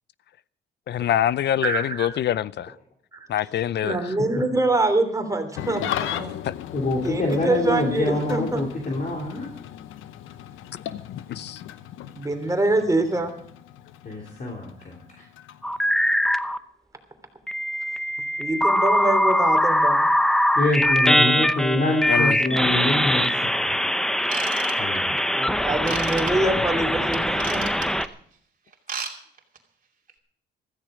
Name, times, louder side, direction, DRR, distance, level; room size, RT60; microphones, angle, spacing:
voice 1, 0.9-2.8 3.3-4.0 6.5-6.6 10.7-10.8 11.1-11.6 22.1-22.4, left 11 dB, 60° left, 0.6 m, -25 dB
voice 2, 1.6-2.1 3.1-3.3 3.8-6.3 7.0-8.7 12.1-13.3 18.4-20.1 25.3-27.8, right 2 dB, 15° right, 3.2 m, -25 dB
Engine starting / Idling, 5.5-16.1, left 11 dB, 85° left, 0.9 m, -36 dB
voice 3, 6.7-9.5 14.0-15.3 20.5-23.8 24.8-25.2, left 2 dB, 45° left, 3.2 m, -26 dB
sound 1, 15.6-16.6 17.5-28.1, equal, 5° left, 0.8 m, -22 dB
Ratchet pawl / Tools, 24.2-25.2 25.9-26.3 27.1-28.0 28.7-29.1 29.4-29.6 30.1-30.2, right 6 dB, 45° right, 2.7 m, -32 dB
15.5 x 14.0 x 5.1 m
cardioid pair, 90°, 20 cm